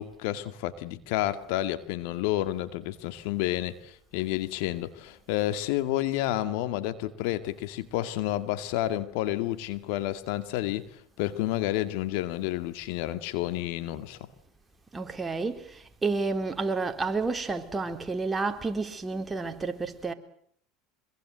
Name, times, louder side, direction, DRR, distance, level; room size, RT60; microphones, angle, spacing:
voice 1, 0.0-14.2, left 14 dB, 70° left, 2.3 m, -30 dB
voice 2, 14.9-15.7 16.0-20.1, right 3 dB, 20° right, 3.7 m, -30 dB
26.0 x 23.0 x 7.9 m
hypercardioid pair, 95°, 0 cm